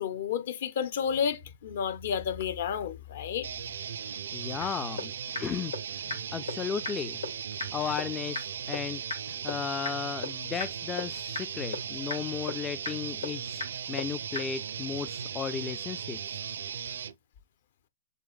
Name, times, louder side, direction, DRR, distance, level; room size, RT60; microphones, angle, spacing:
voice 1, 0.0-3.5, left 7 dB, 60° left, 0.8 m, -31 dB
sound 1, 3.4-17.1, right 7 dB, 70° right, 0.4 m, -37 dB
voice 2, 4.3-5.7 6.0-7.2 7.7-16.4, left 7 dB, 20° left, 0.3 m, -35 dB
sound 2, 4.6-4.7 5.0-5.1 5.3-5.4 5.7-5.8 6.1-6.2 6.5-6.6 6.8-6.9 7.2-7.3 7.6-7.7 8.0-8.1 8.3-8.4 8.7-8.8 9.1-9.2 9.5-9.6 9.8-9.9 10.2-10.3 10.6-10.7 11.0-11.1 11.3-11.4 11.7-11.8 12.1-12.2 12.5-12.6 12.8-12.9 13.2-13.3 13.6-13.7 14.0-14.1 14.3-14.4, left 4 dB, 75° left, 2.6 m, -32 dB
6.7 x 3.0 x 2.3 m
figure-of-eight pair, 110°, 0 cm